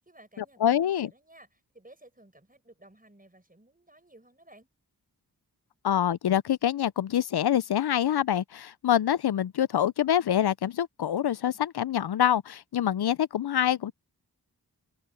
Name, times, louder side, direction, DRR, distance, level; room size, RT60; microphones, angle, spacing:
voice 1, 0.0-4.7, right 1 dB, 20° right, 6.7 m, -56 dB
voice 2, 0.6-1.1 5.8-13.9, left 10 dB, 75° left, 0.5 m, -25 dB
open air
wide cardioid pair, 75°, 39 cm